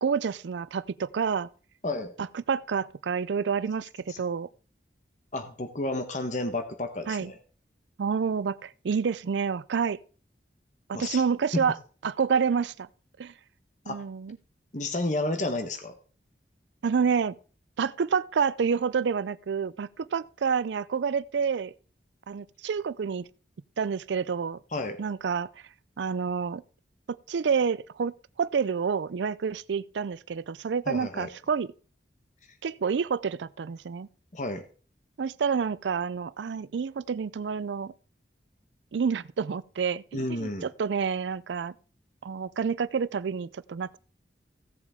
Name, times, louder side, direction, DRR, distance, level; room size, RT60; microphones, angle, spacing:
voice 1, 0.0-1.5 2.2-4.5 7.1-7.3 8.0-10.0 10.9-11.8 12.0-12.9 13.2-13.3 13.9-14.4 16.8-17.4 17.8-21.7 22.3-23.3 23.8-24.6 25.0-25.5 26.0-26.6 27.1-31.7 32.6-34.1 35.2-37.9 38.9-41.7 42.2-44.0, right 6 dB, 85° right, 0.4 m, -28 dB
voice 2, 1.8-2.1 4.1-4.2 5.3-7.4 10.9-11.2 11.5-11.6 13.9-14.0 14.7-15.9 24.7-25.0 30.9-31.3 34.3-34.7 40.1-40.7, left 2 dB, 45° left, 1.1 m, -31 dB
16.0 x 7.3 x 3.5 m
head